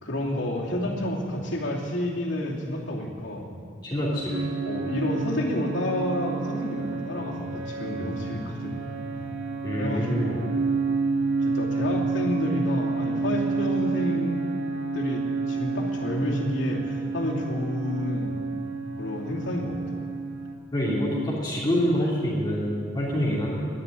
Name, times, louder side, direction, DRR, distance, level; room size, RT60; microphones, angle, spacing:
voice 1, 0.0-3.5 4.7-8.8 9.8-10.6 11.4-14.4 14.9-18.4 19.0-19.8, left 1 dB, 85° left, -3 dB, 2.8 m, -30 dB
voice 2, 3.8-4.5 9.6-10.4 20.7-23.7, equal, 25° left, -7 dB, 2.7 m, -26 dB
sound 1, 4.3-20.5, right 4 dB, 80° right, 1.6 m, -30 dB
11.0 x 11.0 x 9.8 m, 2.1 s
head